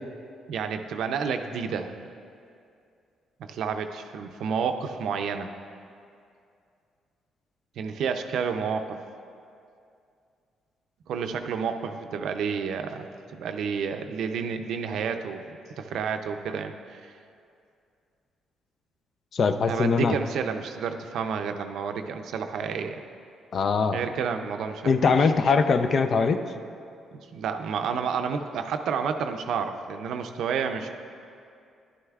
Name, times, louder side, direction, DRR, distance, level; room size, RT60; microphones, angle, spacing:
voice 1, 0.5-2.0 3.4-5.5 7.8-9.0 11.1-15.4 15.8-17.1 19.7-23.0 23.9-24.9 25.2-25.3 27.1-30.9, right 6 dB, 75° right, 7 dB, 0.5 m, -30 dB
voice 2, 19.3-20.1 23.5-24.0 24.9-26.4, left 5 dB, 50° left, 9 dB, 0.5 m, -22 dB
11.0 x 9.7 x 2.4 m, 2.4 s
cardioid pair, 90°, 0 cm